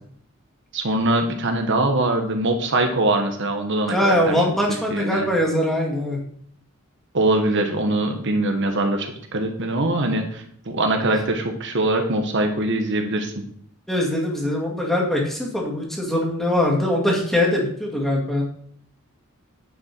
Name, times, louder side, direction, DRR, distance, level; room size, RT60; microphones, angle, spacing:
voice 1, 0.7-4.4 4.9-5.3 7.1-13.3, right 2 dB, 60° right, 5 dB, 1.2 m, -22 dB
voice 2, 3.9-6.2 13.9-18.4, left 1 dB, ahead, -2 dB, 2.3 m, -22 dB
9.5 x 7.3 x 4.5 m, 0.63 s
head